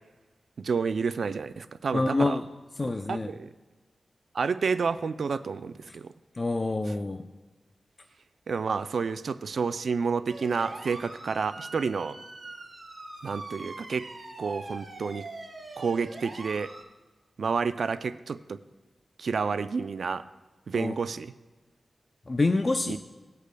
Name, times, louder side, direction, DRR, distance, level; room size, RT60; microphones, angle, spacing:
voice 1, 0.6-2.4 2.8-3.5 4.3-6.1 6.9-7.0 8.5-12.2 13.2-14.1 14.4-15.2 15.8-16.7 17.4-18.6 19.2-20.2 20.7-21.3 22.9-23.0, right 5 dB, 80° right, 12 dB, 0.4 m, -30 dB
voice 2, 1.9-2.4 2.8-3.3 6.4-7.2 20.8-20.9 22.3-23.0, left 2 dB, 40° left, 6 dB, 0.5 m, -26 dB
sound 1, 10.3-16.8, right 2 dB, 50° right, 2.4 m, -43 dB
18.0 x 8.2 x 2.2 m, 1.2 s
cardioid pair, 65°, 0 cm